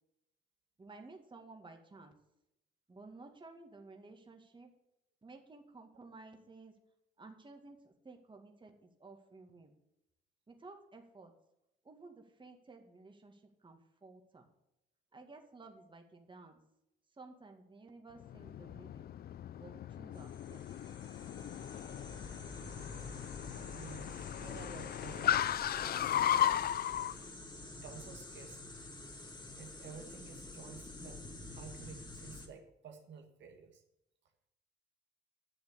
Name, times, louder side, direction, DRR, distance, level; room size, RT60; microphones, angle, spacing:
voice 1, 0.8-2.1 2.9-4.7 5.2-6.7 7.2-9.7 10.5-11.3 11.8-14.5 15.1-16.6 17.2-19.1 19.6-20.6, right 3 dB, 25° right, 3 dB, 2.1 m, -54 dB
Car, 18.2-27.1, left 10 dB, 50° left, 0.4 m, -36 dB
sound 1, 20.1-32.5, left 2 dB, 20° left, 2.2 m, -49 dB
voice 2, 23.7-26.2 26.8-27.2 27.8-28.8 29.6-33.8, right 6 dB, 65° right, 3 dB, 1.9 m, -52 dB
10.5 x 7.3 x 7.0 m, 0.85 s
cardioid pair, 90°, 20 cm